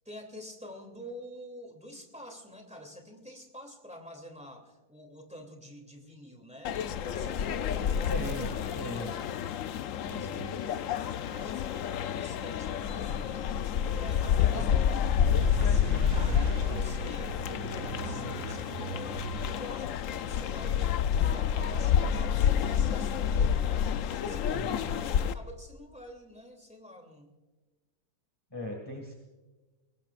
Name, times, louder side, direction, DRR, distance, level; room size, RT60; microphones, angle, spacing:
voice 1, 0.0-6.7 7.1-8.5 8.9-9.0 10.2-10.4 11.1-13.4 14.0-15.0 15.3-17.4 17.7-21.0 21.2-23.8 24.2-27.3, equal, 5° right, 2 dB, 2.6 m, -47 dB
sound 1, 6.6-25.3, left 8 dB, 70° left, 0.8 m, -29 dB
voice 2, 8.1-9.2 10.0-10.7 14.5-14.8 24.5-24.9 28.5-29.2, left 1 dB, 15° left, 1 dB, 1.9 m, -39 dB
sound 2, 15.0-19.6, right 8 dB, 75° right, 1.5 m, -38 dB
23.5 x 19.5 x 2.5 m, 1.2 s
omnidirectional pair, 1.9 m